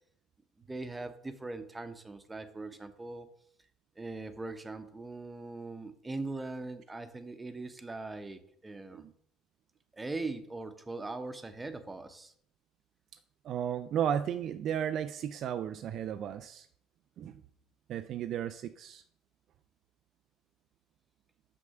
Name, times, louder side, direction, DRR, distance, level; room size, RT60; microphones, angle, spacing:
voice 1, 0.6-3.3 4.0-9.1 9.9-12.3, right 3 dB, 15° right, 9 dB, 1.0 m, -41 dB
voice 2, 13.4-16.7 17.2-17.3 17.9-19.0, right 9 dB, 50° right, 9 dB, 0.4 m, -34 dB
6.3 x 6.2 x 5.7 m, 0.63 s
figure-of-eight pair, 60°, 0 cm